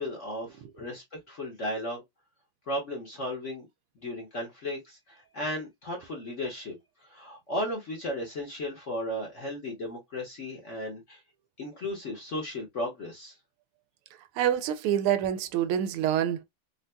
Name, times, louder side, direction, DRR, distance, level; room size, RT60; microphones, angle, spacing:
voice 1, 0.0-2.0 2.7-3.7 4.0-6.8 7.0-11.2 11.6-13.3, left 1 dB, 45° left, 1.0 m, -35 dB
voice 2, 14.3-16.4, right 10 dB, 85° right, 1.5 m, -26 dB
4.1 x 2.5 x 2.2 m
omnidirectional pair, 2.4 m